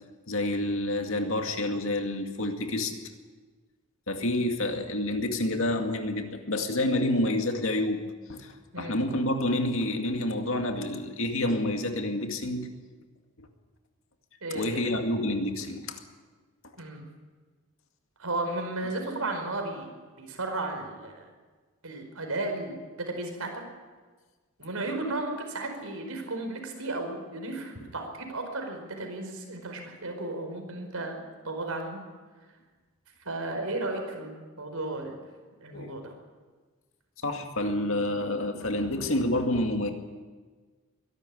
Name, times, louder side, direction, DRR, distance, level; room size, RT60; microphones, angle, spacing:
voice 1, 0.3-2.9 4.1-8.0 8.3-12.7 13.4-13.5 14.5-16.0 35.7-35.9 37.2-39.9, left 1 dB, 65° left, 4 dB, 2.2 m, -28 dB
voice 2, 14.4-14.8 16.8-17.1 18.2-19.9 20.2-21.3 21.8-23.5 24.6-32.0 33.2-35.2 35.6-36.1, right 2 dB, 85° right, 4 dB, 4.9 m, -34 dB
23.0 x 12.0 x 9.9 m, 1.4 s
head